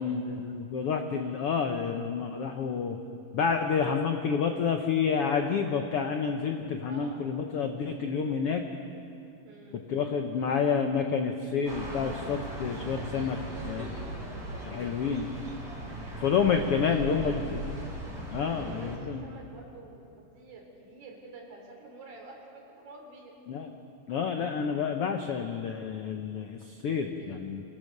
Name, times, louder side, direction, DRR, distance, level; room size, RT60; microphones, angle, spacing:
voice 1, 0.0-3.0 3.3-8.6 9.9-13.4 13.7-13.9 14.7-15.3 16.2-17.6 18.3-19.2 23.5-23.7 24.1-27.6, left 6 dB, 80° left, 5 dB, 1.3 m, -29 dB
voice 2, 6.9-7.3 9.4-9.8 12.9-15.2 16.5-17.6 18.5-20.0 20.4-23.4 27.2-27.4, right 3 dB, 80° right, 0 dB, 5.2 m, -48 dB
sound 1, 11.7-19.0, right 1 dB, 30° right, 4.9 m, -39 dB
26.5 x 17.0 x 6.6 m, 2.6 s
omnidirectional pair, 3.9 m